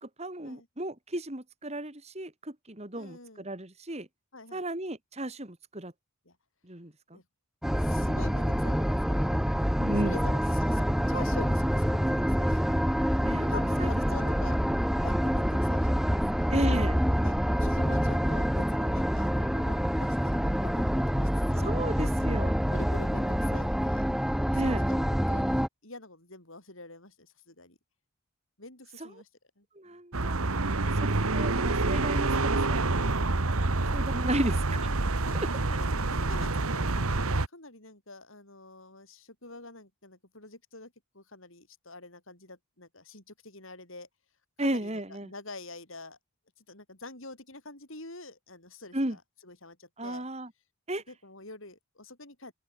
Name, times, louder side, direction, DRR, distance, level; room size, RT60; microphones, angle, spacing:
voice 1, 0.0-4.1 4.5-5.9 6.6-7.2 9.8-10.1 13.2-13.5 13.8-13.9 14.2-14.3 16.5-17.0 21.6-22.6 24.5-24.8 29.0-29.1 29.8-30.4 30.8-33.0 33.3-33.4 33.9-34.6 35.7-35.8 44.6-45.3 48.9-49.2 50.0-50.5 50.9-51.0, right 1 dB, 30° right, 2.6 m, -34 dB
voice 2, 2.9-3.5 4.3-4.6 6.3-6.4 7.1-7.2 7.8-9.8 10.0-12.9 13.5-14.6 15.0-16.5 17.2-20.8 21.2-22.1 22.7-24.1 24.5-27.8 28.6-29.3 29.6-29.7 34.3-34.8 35.2-35.4 35.7-44.1 44.6-46.2 46.7-50.2 51.1-52.5, left 2 dB, 65° left, 7.5 m, -46 dB
sound 1, 7.6-25.7, equal, ahead, 1.9 m, -26 dB
sound 2, 30.1-37.5, right 2 dB, 75° right, 1.6 m, -27 dB
open air
head